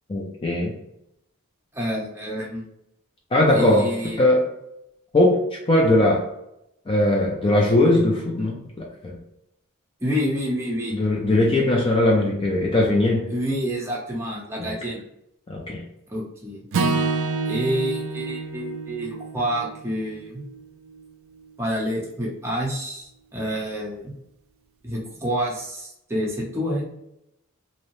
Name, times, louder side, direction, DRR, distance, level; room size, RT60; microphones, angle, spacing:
voice 1, 0.1-0.7 3.3-3.9 4.2-4.5 5.1-5.4 5.7-6.2 6.9-9.2 10.9-13.3 14.6-14.7 15.5-15.8, left 1 dB, 25° left, -2 dB, 0.4 m, -20 dB
voice 2, 1.7-2.7 3.5-4.2 10.0-10.9 13.3-15.0 16.1-16.6 17.5-20.4 21.6-24.1 24.8-26.8, equal, 10° right, -4 dB, 0.7 m, -28 dB
Acoustic guitar / Strum, 16.7-21.0, right 4 dB, 60° right, 0.4 m, -28 dB
2.7 x 2.0 x 2.9 m, 0.81 s
head